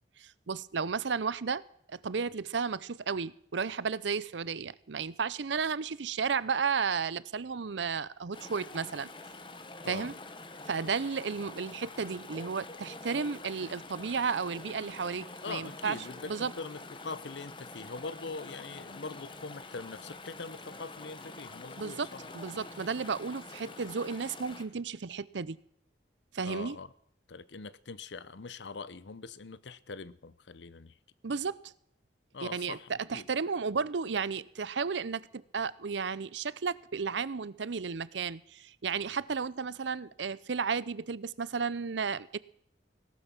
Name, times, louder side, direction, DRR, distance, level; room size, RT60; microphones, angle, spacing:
voice 1, 0.2-1.6 1.9-9.1 9.9-10.1 10.7-16.0 16.3-16.5 21.8-25.6 26.3-26.8 31.2-31.6 32.4-42.4, right 5 dB, 80° right, 0.6 m, -33 dB
Chatter / Stream, 8.3-24.6, left 3 dB, 25° left, 1.2 m, -46 dB
voice 2, 9.8-10.1 15.4-22.2 26.4-26.9 27.3-31.0 32.3-33.3, left 4 dB, 80° left, 0.8 m, -42 dB
17.5 x 12.5 x 6.0 m
head